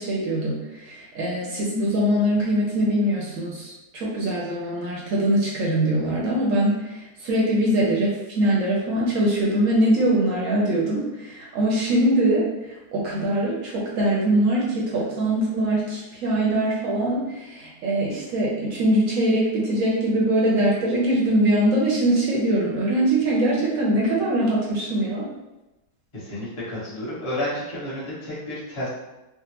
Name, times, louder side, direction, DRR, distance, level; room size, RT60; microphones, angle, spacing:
voice 1, 0.0-25.3, right 1 dB, 65° right, -4 dB, 0.9 m, -22 dB
voice 2, 26.1-28.9, left 1 dB, 25° left, -9 dB, 0.8 m, -31 dB
3.5 x 2.1 x 2.9 m, 1.0 s
omnidirectional pair, 1.8 m